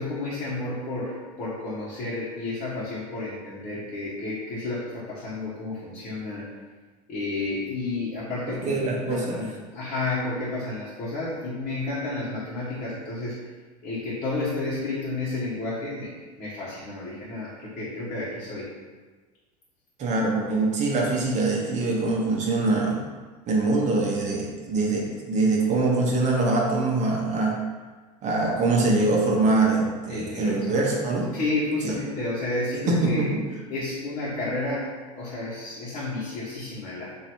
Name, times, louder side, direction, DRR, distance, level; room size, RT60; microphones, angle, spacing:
voice 1, 0.0-6.5 7.1-13.4 13.8-18.7 30.1-30.8 31.3-33.3 33.7-34.9 35.1-37.1, left 2 dB, 35° left, -8 dB, 1.2 m, -31 dB
voice 2, 8.5-9.4 20.0-23.0 23.5-27.6 28.2-31.3 31.8-31.9 32.9-33.3, right 3 dB, 35° right, -2 dB, 0.9 m, -23 dB
3.0 x 2.7 x 4.4 m, 1.4 s
hypercardioid pair, 100°, 20 cm